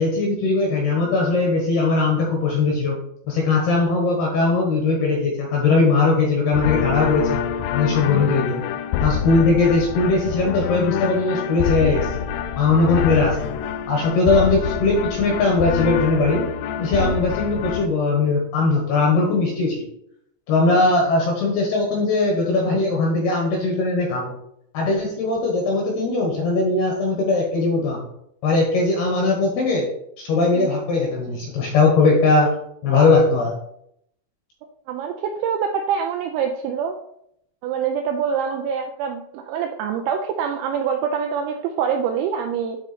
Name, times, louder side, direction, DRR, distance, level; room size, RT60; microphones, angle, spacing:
voice 1, 0.0-3.0 3.3-7.4 7.7-8.6 9.0-12.3 12.6-13.5 13.9-16.4 16.8-19.8 20.5-24.3 24.7-28.1 28.4-29.9 30.2-32.5 32.8-33.6, left 3 dB, 70° left, 0 dB, 2.5 m, -20 dB
sound 1, 6.5-17.9, left 8 dB, 85° left, 3.2 m, -26 dB
voice 2, 34.9-37.0 37.6-42.8, right 7 dB, 90° right, 3 dB, 2.6 m, -25 dB
9.3 x 3.7 x 4.1 m, 0.74 s
omnidirectional pair, 5.9 m